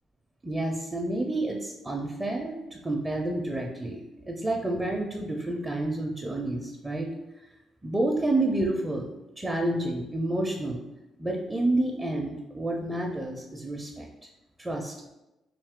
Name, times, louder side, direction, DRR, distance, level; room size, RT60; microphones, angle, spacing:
voice 1, 0.4-7.1 7.8-9.1 9.4-10.8 11.2-14.1 14.6-15.1, right 2 dB, 15° right, 0 dB, 0.5 m, -29 dB
3.2 x 3.0 x 3.5 m, 0.98 s
cardioid pair, 90°, 0 cm